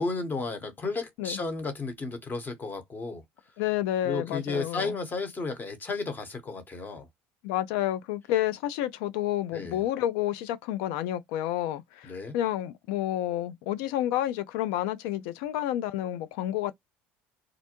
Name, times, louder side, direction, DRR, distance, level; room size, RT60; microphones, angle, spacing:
voice 1, 0.0-3.2 4.0-7.1 9.5-9.8 12.0-12.3, left 3 dB, 30° left, 1.0 m, -33 dB
voice 2, 3.6-4.9 7.4-16.7, left 13 dB, 80° left, 0.4 m, -30 dB
2.4 x 2.1 x 2.9 m
supercardioid pair, 80°, 6 cm